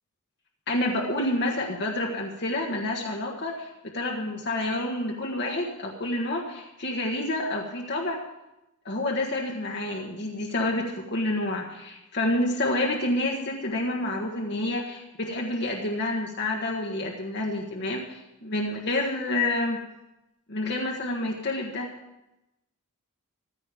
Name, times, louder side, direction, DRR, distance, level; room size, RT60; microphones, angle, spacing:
voice 1, 0.7-8.2 8.8-19.8 20.5-21.9, left 1 dB, 50° left, -1 dB, 1.5 m, -28 dB
14.5 x 14.5 x 5.2 m, 0.92 s
head